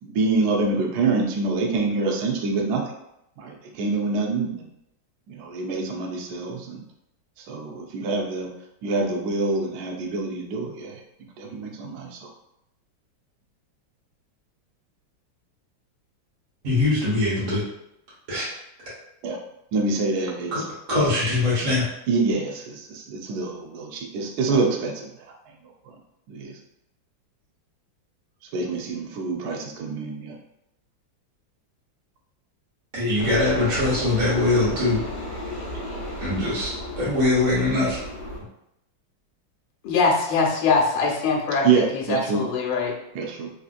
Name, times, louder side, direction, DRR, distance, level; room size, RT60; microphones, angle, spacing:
voice 1, 0.0-2.9 3.4-4.7 5.3-6.8 7.5-8.5 8.8-11.0 11.4-12.3 19.2-19.4 19.7-20.6 22.1-25.3 25.8-26.0 26.3-26.6 28.5-30.4 41.6-42.4 43.1-43.5, right 3 dB, 70° right, 1 dB, 0.9 m, -26 dB
voice 2, 16.6-17.6 18.3-18.5 20.5-20.6 20.9-21.8 32.9-35.0 36.2-38.0, left 2 dB, 40° right, -8 dB, 1.3 m, -22 dB
sound 1, 33.2-38.4, left 1 dB, 70° left, 1.2 m, -33 dB
voice 3, 39.8-42.9, left 4 dB, 85° left, -1 dB, 1.5 m, -22 dB
3.3 x 2.8 x 2.4 m, 0.82 s
omnidirectional pair, 2.2 m